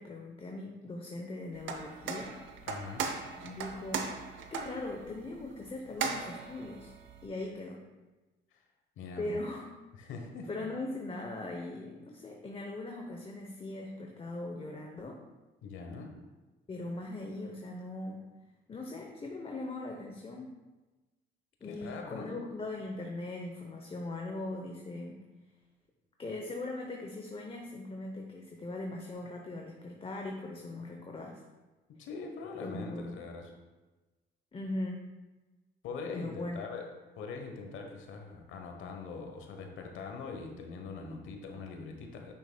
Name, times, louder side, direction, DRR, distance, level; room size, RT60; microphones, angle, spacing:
voice 1, 0.0-2.4 3.4-4.2 4.5-6.9 7.2-7.8 9.2-9.6 10.0-10.1 10.5-15.2 16.7-18.3 18.7-20.6 21.6-25.3 26.2-31.4 32.6-33.2 34.5-35.0 36.1-36.7, left 2 dB, 25° left, 1 dB, 0.8 m, -40 dB
sound 1, 1.5-7.3, right 5 dB, 75° right, 0.7 m, -39 dB
voice 2, 2.7-3.0 8.5-8.6 9.0-9.4 10.0-10.5 15.6-16.1 21.6-22.4 32.0-33.5 35.8-36.9 37.2-42.3, left 4 dB, 80° left, 3 dB, 1.0 m, -42 dB
8.9 x 6.1 x 2.2 m, 1.2 s
cardioid pair, 90°, 20 cm